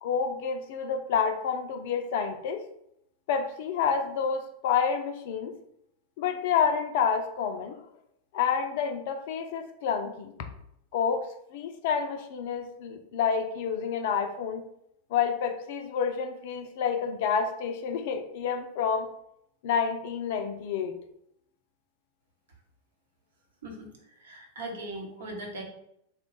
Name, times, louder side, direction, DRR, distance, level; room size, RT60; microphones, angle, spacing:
voice 1, 0.0-2.6 3.3-5.6 6.2-7.8 8.3-10.3 10.9-14.6 15.1-19.1 19.6-21.0, left 6 dB, 50° left, 6 dB, 0.4 m, -29 dB
voice 2, 23.6-25.6, right 1 dB, 65° right, 0 dB, 1.0 m, -39 dB
3.5 x 2.3 x 3.8 m, 0.75 s
figure-of-eight pair, 90°, 0 cm